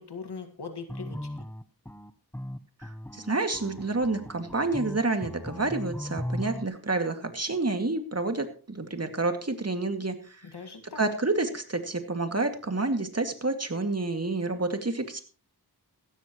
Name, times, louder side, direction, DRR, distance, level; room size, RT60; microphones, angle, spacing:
voice 1, 0.0-1.5 10.4-11.0, left 5 dB, 90° left, 6 dB, 2.0 m, -41 dB
sound 1, 0.9-6.7, left 1 dB, 5° left, 0.9 m, -37 dB
voice 2, 2.8-10.4 11.0-15.2, right 3 dB, 40° right, 6 dB, 2.3 m, -29 dB
16.0 x 13.5 x 3.1 m, 0.38 s
wide cardioid pair, 45°, 39 cm